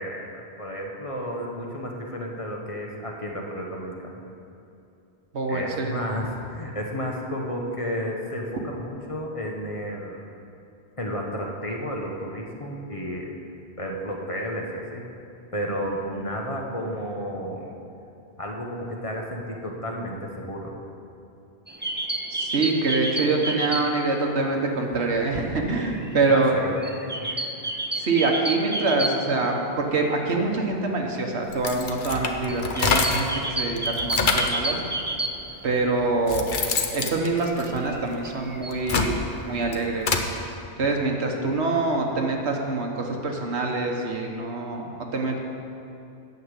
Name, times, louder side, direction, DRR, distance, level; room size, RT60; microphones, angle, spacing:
voice 1, 0.0-4.2 5.5-10.2 11.0-13.3 13.8-15.1 15.5-17.7 18.4-20.7 26.3-26.7 27.0-27.3, equal, 30° left, -1 dB, 1.2 m, -32 dB
voice 2, 5.3-6.0 22.3-26.6 28.0-29.6 29.9-34.8 35.6-36.4 36.9-39.2 39.4-40.2 40.8-45.4, right 3 dB, 75° right, 1 dB, 1.5 m, -25 dB
sound 1, 21.7-24.1 24.4-24.5 24.8-29.7 30.0-30.1 30.3-30.5 31.0-36.1 36.5-38.8, right 2 dB, 15° right, 0.4 m, -31 dB
sound 2, 31.5-33.4 33.8-34.6 35.5-35.6 36.0-38.2 38.6-40.3, left 4 dB, 50° left, 0.9 m, -26 dB
9.5 x 7.0 x 8.1 m, 2.6 s
omnidirectional pair, 1.1 m